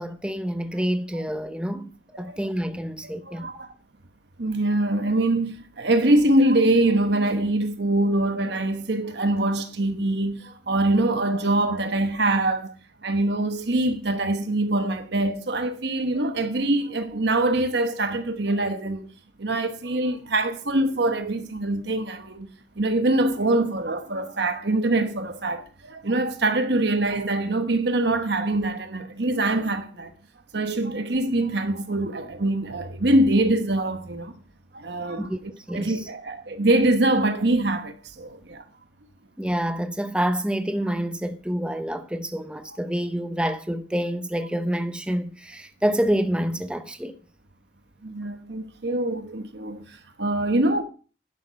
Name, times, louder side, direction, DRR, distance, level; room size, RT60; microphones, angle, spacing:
voice 1, 0.0-1.9 2.2-3.5 35.2-35.4 35.7-36.1 39.4-47.2, equal, 5° right, 0.8 m, -27 dB
voice 2, 3.0-3.7 4.4-12.8 13.0-19.1 19.4-30.1 30.5-34.3 34.7-35.3 35.7-38.6 48.0-50.8, right 2 dB, 65° right, 1.1 m, -24 dB
11.0 x 11.0 x 5.3 m
head